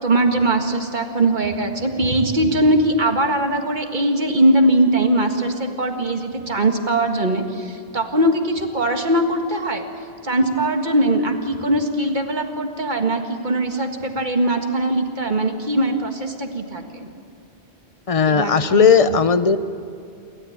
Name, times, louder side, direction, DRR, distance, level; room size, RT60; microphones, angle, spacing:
voice 1, 0.0-9.9 10.2-17.1 18.3-19.2, right 1 dB, 45° right, 4 dB, 1.9 m, -21 dB
voice 2, 18.1-19.6, left 6 dB, 35° left, 12 dB, 0.8 m, -16 dB
28.5 x 13.5 x 8.8 m, 2.6 s
omnidirectional pair, 1.1 m